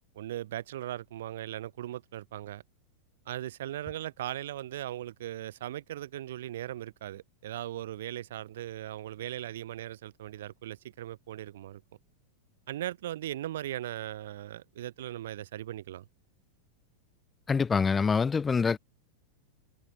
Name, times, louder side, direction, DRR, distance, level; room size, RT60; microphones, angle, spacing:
voice 1, 0.1-2.6 3.3-11.8 12.7-16.0, right 13 dB, 60° right, 1.5 m, -38 dB
voice 2, 17.5-18.8, left 5 dB, 15° left, 0.7 m, -25 dB
figure-of-eight pair, 90°, 0 cm